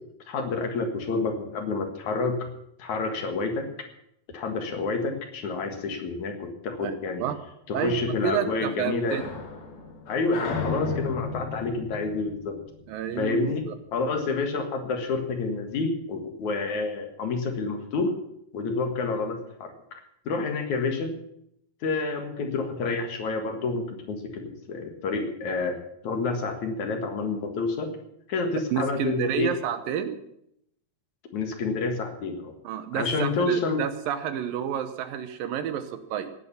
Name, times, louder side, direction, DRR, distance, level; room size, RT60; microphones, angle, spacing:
voice 1, 0.3-2.4 2.8-3.7 4.3-7.2 7.7-9.2 10.1-12.6 13.2-13.6 13.9-18.1 18.5-19.7 20.3-21.1 21.8-24.2 24.7-25.8 26.0-27.9 28.3-29.5 31.3-32.5 32.9-33.8, left 3 dB, 60° left, 5 dB, 2.9 m, -28 dB
voice 2, 6.8-7.4 7.7-8.0 8.2-9.2 12.9-13.7 28.7-30.2 32.6-36.3, right 9 dB, 75° right, 10 dB, 2.7 m, -30 dB
sound 1, 7.9-13.3, left 4 dB, 90° left, 4.3 m, -35 dB
17.5 x 10.0 x 7.1 m, 0.73 s
omnidirectional pair, 4.2 m